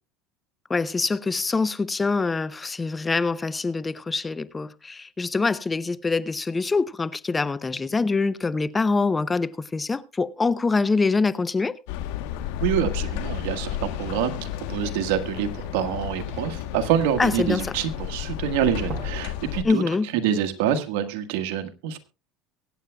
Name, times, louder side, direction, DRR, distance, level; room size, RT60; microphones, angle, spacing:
voice 1, 0.7-11.8 17.2-17.7 19.6-20.1, left 4 dB, 20° left, 0.6 m, -24 dB
sound 1, 11.9-19.6, left 11 dB, 80° left, 1.1 m, -32 dB
voice 2, 12.6-19.8 20.1-22.0, right 9 dB, 80° right, 1.5 m, -26 dB
sound 2, 15.6-15.7 15.9-18.3 18.6-19.4 19.7-19.9 20.3-20.4, right 4 dB, 45° right, 3.2 m, -42 dB
23.5 x 9.0 x 2.3 m
supercardioid pair, 105°, 0 cm